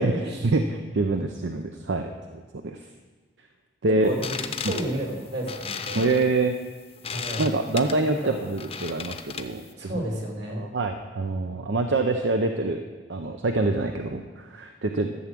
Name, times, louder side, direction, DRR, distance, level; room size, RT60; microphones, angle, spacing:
voice 1, 0.4-2.8 3.8-4.1 5.9-6.5 7.4-9.9 10.5-12.8 13.1-15.1, right 2 dB, 85° right, 5 dB, 0.7 m, -25 dB
voice 2, 4.0-6.1 7.1-7.5 8.0-8.4 9.8-10.7, right 1 dB, 65° right, 0 dB, 2.9 m, -31 dB
sound 1, 4.1-9.7, left 6 dB, 35° left, 0.6 m, -36 dB
12.0 x 7.2 x 7.5 m, 1.4 s
head